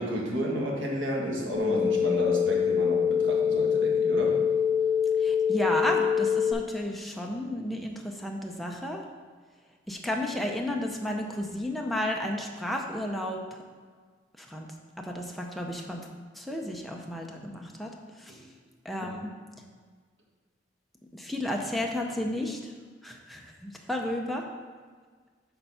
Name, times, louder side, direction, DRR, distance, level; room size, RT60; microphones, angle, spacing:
voice 1, 0.0-4.4 18.3-18.4, equal, 85° right, -2 dB, 1.6 m, -31 dB
sound 1, 1.5-6.5, left 7 dB, 50° right, 1.3 m, -25 dB
voice 2, 5.2-9.0 9.9-13.4 14.4-14.7 15.0-16.0 16.4-17.9 18.2-18.4 18.8-19.3 21.1-22.7 23.0-24.4, left 1 dB, ahead, 0 dB, 0.6 m, -32 dB
6.8 x 4.5 x 5.5 m, 1.5 s
head